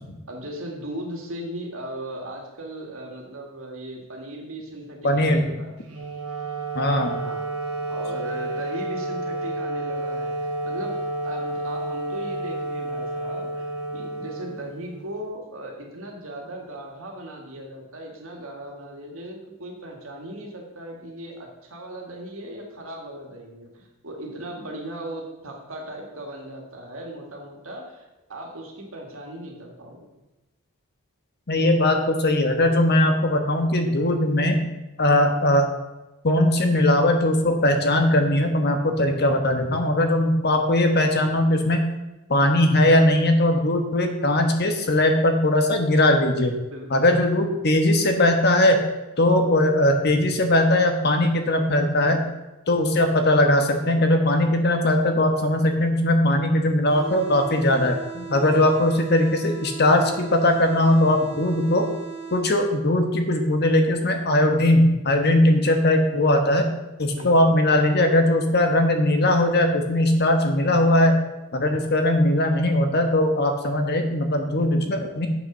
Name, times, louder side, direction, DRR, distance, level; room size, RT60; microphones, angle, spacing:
voice 1, 0.3-5.8 7.1-7.4 7.9-13.7 13.9-30.0 46.7-47.1 58.5-58.9 67.1-67.5 71.6-71.9, right 1 dB, 65° right, 1 dB, 2.1 m, -37 dB
voice 2, 5.0-5.5 6.7-7.2 31.5-34.6 35.0-35.7 36.2-41.8 42.3-46.5 46.9-48.8 49.2-52.2 52.7-61.9 62.3-66.7 67.0-71.2 71.5-75.3, left 1 dB, 45° left, 5 dB, 1.2 m, -20 dB
Wind instrument woodwind instrument, 5.8-15.1, right 2 dB, 85° right, 1.8 m, -30 dB
sound 1, 56.9-62.8, right 5 dB, 85° left, 2.8 m, -38 dB
8.2 x 6.1 x 6.3 m, 1.0 s
head